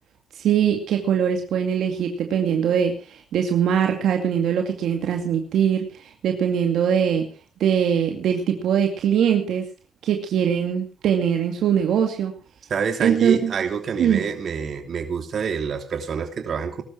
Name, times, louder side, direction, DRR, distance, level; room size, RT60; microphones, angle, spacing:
voice 1, 0.4-7.3 7.6-9.6 10.0-12.3 13.0-13.5 14.0-14.3, right 8 dB, 75° right, 4 dB, 2.3 m, -22 dB
voice 2, 12.7-16.8, right 6 dB, 55° right, 6 dB, 3.1 m, -27 dB
20.5 x 12.5 x 4.5 m, 0.36 s
cardioid pair, 90°, 0 cm